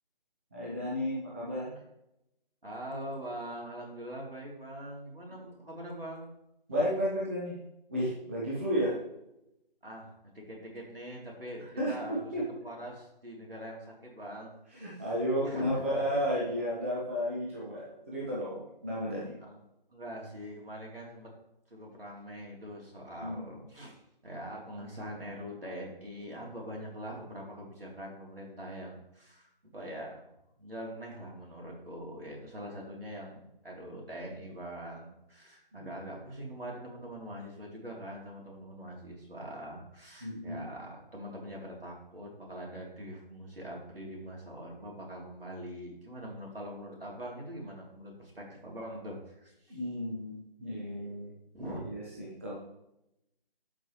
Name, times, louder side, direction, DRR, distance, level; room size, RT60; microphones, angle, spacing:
voice 1, 0.5-1.8 6.7-7.6 7.9-9.0 11.8-12.4 14.7-19.3 23.2-23.5 35.7-35.9 40.2-40.6 49.7-51.3 51.6-52.6, equal, 15° right, -6 dB, 0.8 m, -33 dB
voice 2, 2.6-6.3 8.5-8.6 9.8-12.2 12.6-14.9 15.4-16.0 19.4-19.6 19.9-21.3 21.7-30.3 30.6-49.8 51.5-51.8, equal, 75° right, -2 dB, 3.1 m, -43 dB
12.0 x 5.1 x 3.1 m, 0.85 s
figure-of-eight pair, 155°, 29 cm